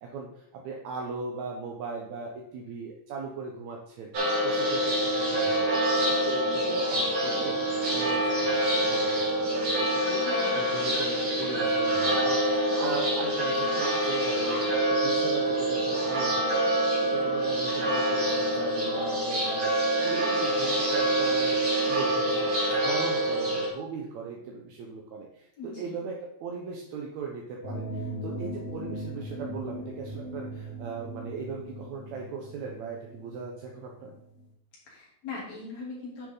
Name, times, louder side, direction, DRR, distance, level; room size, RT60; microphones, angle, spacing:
voice 1, 0.0-4.1 4.4-10.2 10.5-16.6 17.0-21.6 21.8-34.2, right 4 dB, 70° right, 0 dB, 2.3 m, -39 dB
sound 1, 4.1-23.7, right 1 dB, 45° right, 3.3 m, -26 dB
voice 2, 10.3-10.6 25.6-25.9 34.9-36.3, left 3 dB, 60° left, -4 dB, 4.4 m, -40 dB
sound 2, 27.6-34.4, right 1 dB, 40° left, 1.4 m, -39 dB
9.9 x 6.7 x 4.0 m, 0.73 s
omnidirectional pair, 3.4 m